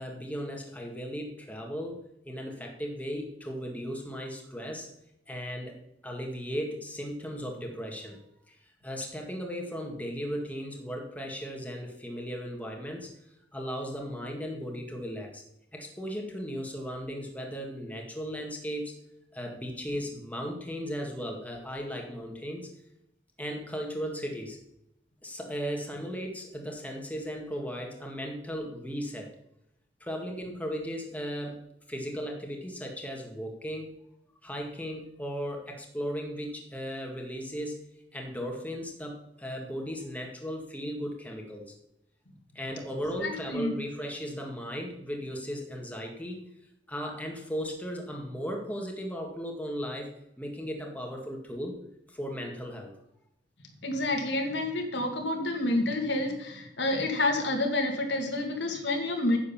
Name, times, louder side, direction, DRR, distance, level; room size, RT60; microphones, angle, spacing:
voice 1, 0.0-4.9 5.3-5.8 6.0-8.2 8.5-8.6 8.8-13.1 13.5-15.4 15.7-18.9 19.3-22.7 23.4-24.6 25.2-29.3 30.0-31.6 31.9-33.9 34.4-37.8 38.1-41.7 42.6-46.4 46.9-50.1 50.4-51.8 52.1-52.9, equal, 10° left, 1 dB, 2.0 m, -36 dB
voice 2, 43.2-43.7 53.8-59.4, left 2 dB, 70° left, 3 dB, 2.5 m, -29 dB
9.9 x 8.3 x 7.2 m, 0.79 s
head